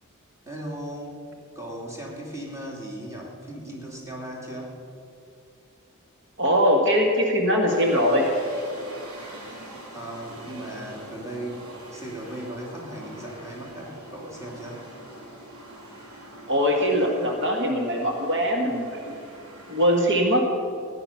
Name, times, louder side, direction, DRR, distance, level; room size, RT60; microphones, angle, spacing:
voice 1, 0.4-1.2 1.5-4.8 9.9-14.8, right 1 dB, 15° right, -3 dB, 2.6 m, -37 dB
voice 2, 6.4-8.3 16.5-19.1 19.7-20.4, equal, 60° right, 1 dB, 1.6 m, -22 dB
sound 1, 7.7-20.0, right 1 dB, 85° right, 2.8 m, -43 dB
16.0 x 10.0 x 5.8 m, 2.5 s
head